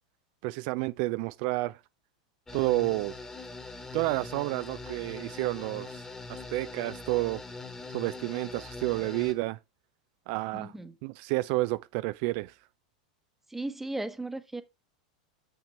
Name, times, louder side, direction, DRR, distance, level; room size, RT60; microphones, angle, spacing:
voice 1, 0.4-1.8 2.5-3.1 3.9-6.0 6.3-7.4 7.9-9.6 10.3-10.7 11.0-12.6, right 20 dB, 55° right, 0.3 m, -30 dB
sound 1, 2.5-9.3, left 3 dB, 15° left, 1.6 m, -42 dB
voice 2, 10.5-10.9 13.5-14.6, right 2 dB, 5° right, 1.0 m, -36 dB
7.2 x 6.1 x 4.4 m
hypercardioid pair, 100°, 4 cm